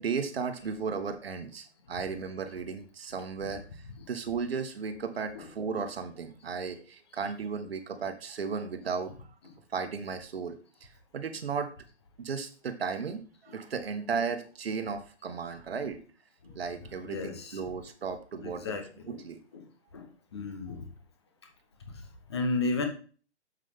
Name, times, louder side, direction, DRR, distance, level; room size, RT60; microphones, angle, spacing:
voice 1, 0.0-9.3 9.7-11.7 12.2-16.0 16.5-18.8 19.1-19.4 20.7-20.8, right 5 dB, 55° right, 8 dB, 1.4 m, -35 dB
voice 2, 16.8-17.6 18.4-19.2 19.5-19.6 19.9-20.9 21.9-22.0 22.3-22.9, left 3 dB, 20° left, 5 dB, 1.0 m, -34 dB
7.8 x 7.4 x 3.6 m, 0.39 s
hypercardioid pair, 175°, 36 cm